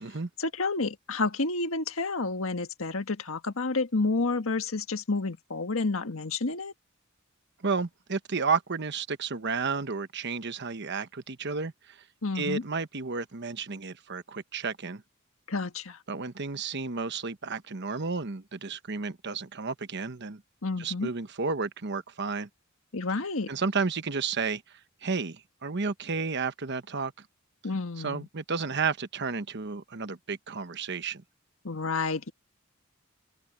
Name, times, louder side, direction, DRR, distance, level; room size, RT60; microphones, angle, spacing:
voice 1, 0.4-6.7 12.2-12.6 15.5-16.0 20.6-21.1 22.9-23.5 27.6-28.3 31.6-32.3, left 3 dB, 80° left, 1.6 m, -30 dB
voice 2, 7.6-12.0 12.3-15.0 16.1-20.4 20.8-22.5 23.5-24.6 25.0-27.1 28.0-31.2, right 4 dB, 55° right, 1.1 m, -32 dB
open air
head